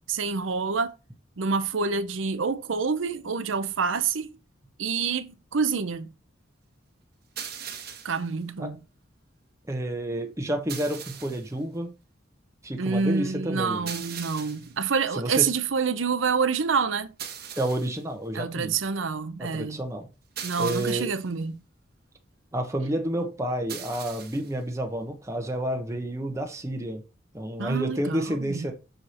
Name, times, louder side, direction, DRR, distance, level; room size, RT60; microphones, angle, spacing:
voice 1, 0.1-0.9 1.4-4.3 4.8-6.1 8.0-8.8 12.8-17.1 18.3-19.8 20.4-21.5 27.6-28.7, right 5 dB, 85° right, 0.7 m, -27 dB
sound 1, 7.4-8.3 10.7-11.5 13.9-14.8 17.2-18.0 20.4-21.3 23.7-24.5, right 8 dB, 55° right, 1.2 m, -39 dB
voice 2, 9.6-11.9 12.6-13.9 15.1-15.5 17.6-18.7 19.4-20.1 20.6-21.1 22.5-27.0 27.3-28.7, right 1 dB, 15° right, 1.0 m, -30 dB
6.6 x 4.8 x 4.2 m
head